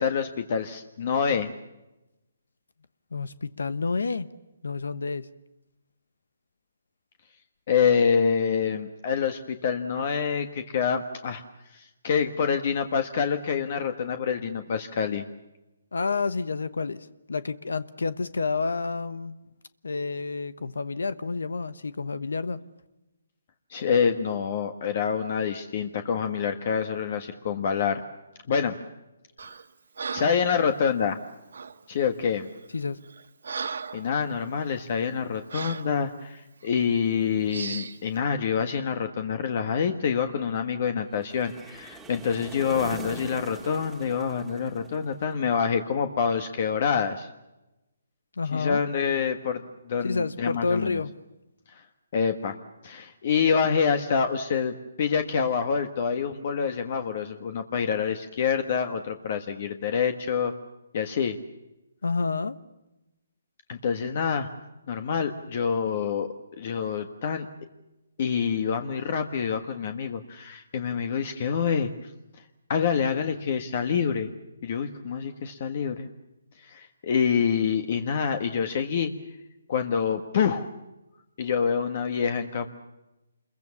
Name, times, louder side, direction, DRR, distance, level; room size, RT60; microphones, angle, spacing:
voice 1, 0.0-1.5 7.7-11.4 11.7-15.2 23.7-28.0 28.5-28.8 30.1-31.2 31.9-32.5 33.9-47.3 48.5-51.0 51.7-51.8 52.1-52.5 52.8-60.5 60.9-61.4 63.7-64.5 64.9-66.3 66.6-67.5 68.2-71.9 72.7-74.3 74.6-76.1 76.6-79.1 79.7-80.7 81.4-82.7, left 6 dB, 45° left, 1.5 m, -26 dB
voice 2, 3.1-4.3 4.6-5.3 15.9-19.4 19.8-22.6 32.7-33.0 48.4-48.8 50.0-51.1 62.0-62.6, left 4 dB, 85° left, 1.1 m, -29 dB
Breathing, 29.4-29.6 30.0-30.5 31.5-31.8 32.5-32.6 33.0-34.1 34.5-34.7 35.5-35.9 36.6-36.8 37.5-38.0, right 5 dB, 75° right, 1.6 m, -36 dB
sound 1, 41.2-45.4, right 3 dB, 5° right, 1.9 m, -43 dB
27.5 x 22.5 x 7.2 m
hypercardioid pair, 155°, 0 cm